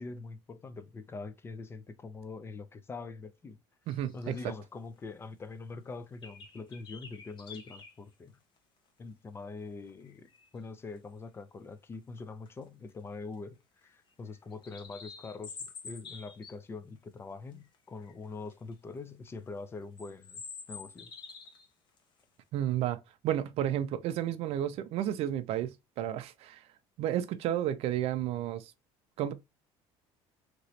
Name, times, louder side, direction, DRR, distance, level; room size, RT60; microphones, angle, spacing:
voice 1, 0.0-3.6 4.1-8.4 9.0-20.4 20.7-21.1, left 3 dB, 20° left, 0.4 m, -44 dB
sound 1, 3.9-4.5 5.0-5.1 5.4-5.5 6.2-7.9 8.6-8.7 9.8-10.5 11.9-12.2 12.5-12.6 12.9-13.3 13.8-16.5 17.5-17.8 18.0-18.7 19.3-19.4 20.0-21.7 22.0-22.2, left 5 dB, 40° left, 0.9 m, -48 dB
voice 2, 3.9-4.4 22.5-26.6 27.0-28.7 29.2-29.3, right 11 dB, 55° right, 0.5 m, -32 dB
3.0 x 2.9 x 2.8 m
cardioid pair, 130°, 12 cm